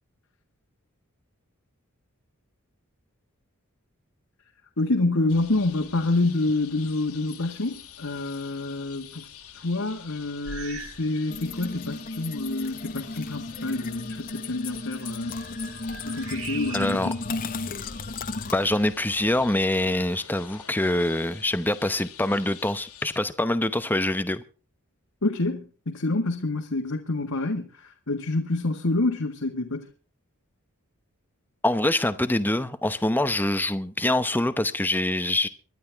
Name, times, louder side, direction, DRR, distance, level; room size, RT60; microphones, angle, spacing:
voice 1, 4.8-9.3 9.5-15.4 16.0-17.1 25.2-29.9, left 2 dB, 75° left, 1.8 m, -27 dB
sound 1, 5.3-23.2, left 9 dB, 90° left, 2.6 m, -47 dB
sound 2, 10.4-11.1 11.4-11.7 12.4-12.5 14.9-17.2 17.7-18.8, right 4 dB, 75° right, 6.0 m, -42 dB
sound 3, 11.3-18.6, left 3 dB, 40° left, 1.0 m, -34 dB
voice 2, 16.7-17.1 18.5-24.4 31.6-35.5, left 1 dB, 10° left, 0.8 m, -25 dB
25.5 x 11.0 x 3.6 m
head